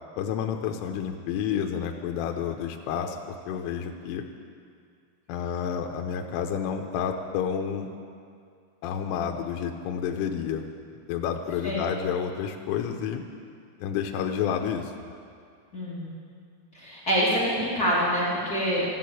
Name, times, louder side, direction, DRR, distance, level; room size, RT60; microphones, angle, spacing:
voice 1, 0.2-4.2 5.3-7.9 8.8-10.6 11.1-13.2 13.8-14.9, left 8 dB, 80° left, 3 dB, 3.2 m, -30 dB
voice 2, 15.7-16.1 16.7-19.0, equal, 45° left, -8 dB, 1.1 m, -26 dB
14.0 x 10.5 x 7.8 m, 2.3 s
omnidirectional pair, 5.9 m